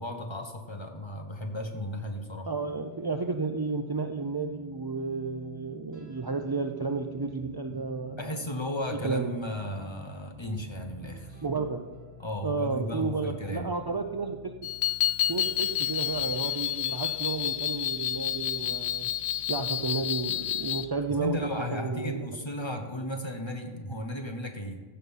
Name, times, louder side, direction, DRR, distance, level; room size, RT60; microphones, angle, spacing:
voice 1, 0.0-2.5 7.7-7.8 8.2-11.4 12.2-13.7 21.2-24.8, left 1 dB, 25° left, 4 dB, 1.0 m, -35 dB
voice 2, 2.5-8.3 9.0-9.3 11.4-11.8 12.4-14.5 15.3-19.1 19.5-22.2, right 4 dB, 40° right, 5 dB, 0.3 m, -32 dB
sound 1, 2.6-21.5, left 1 dB, 15° right, 2.0 m, -50 dB
sound 2, 14.6-20.8, left 12 dB, 90° left, 1.0 m, -30 dB
15.0 x 5.6 x 5.6 m, 1.3 s
omnidirectional pair, 1.2 m